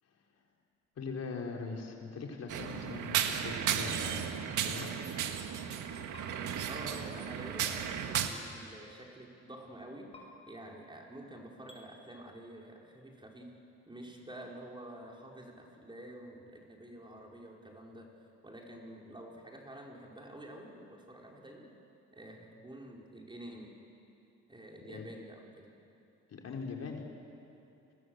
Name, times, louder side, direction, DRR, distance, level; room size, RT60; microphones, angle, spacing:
voice 1, 1.0-4.3 4.6-4.9 24.8-25.1 26.3-27.0, left 4 dB, 55° left, 1 dB, 3.8 m, -41 dB
sound 1, 2.5-8.3, right 9 dB, 80° right, 1.8 m, -34 dB
sound 2, 6.1-6.3 8.1-8.3 10.1-10.2 11.7-11.8, left 3 dB, 20° left, 6.7 m, -51 dB
voice 2, 6.7-10.1 10.5-13.5 13.8-18.1 18.4-21.7 22.1-23.7 24.5-25.7, right 1 dB, 15° right, -1 dB, 5.0 m, -48 dB
30.0 x 22.0 x 8.0 m, 2.7 s
cardioid pair, 90°, 30 cm